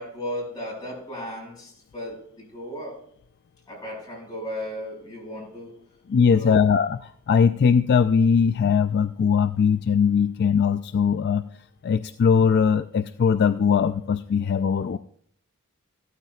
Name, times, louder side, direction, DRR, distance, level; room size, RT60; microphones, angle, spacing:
voice 1, 0.0-3.0 3.7-5.8 6.3-6.6, equal, 20° left, -3 dB, 5.4 m, -35 dB
voice 2, 6.1-7.0 7.3-11.5 11.8-15.0, left 6 dB, 50° left, 11 dB, 0.3 m, -20 dB
15.5 x 13.0 x 2.4 m, 0.66 s
head